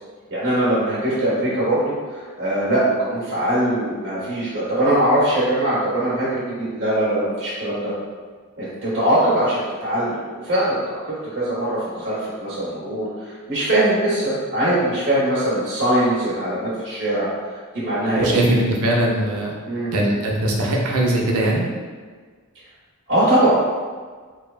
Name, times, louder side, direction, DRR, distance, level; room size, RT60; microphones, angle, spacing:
voice 1, 0.3-7.9 8.6-10.2 10.4-17.3 17.7-18.5 19.7-19.9 23.1-23.6, right 1 dB, 50° right, -9 dB, 0.9 m, -21 dB
voice 2, 18.2-19.5 19.9-21.7, right 1 dB, 75° right, -2 dB, 0.5 m, -20 dB
2.9 x 2.1 x 2.4 m, 1.5 s
head